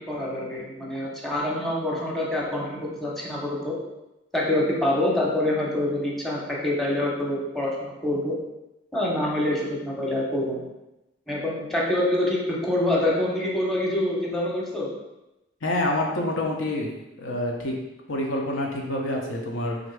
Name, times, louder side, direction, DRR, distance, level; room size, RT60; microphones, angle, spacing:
voice 1, 0.1-3.7 4.3-8.3 8.9-10.6 11.3-14.9, left 1 dB, ahead, -3 dB, 0.8 m, -26 dB
voice 2, 15.6-16.9 17.2-17.8 18.1-19.8, left 1 dB, 85° left, 0 dB, 0.8 m, -27 dB
3.5 x 2.6 x 4.6 m, 0.96 s
head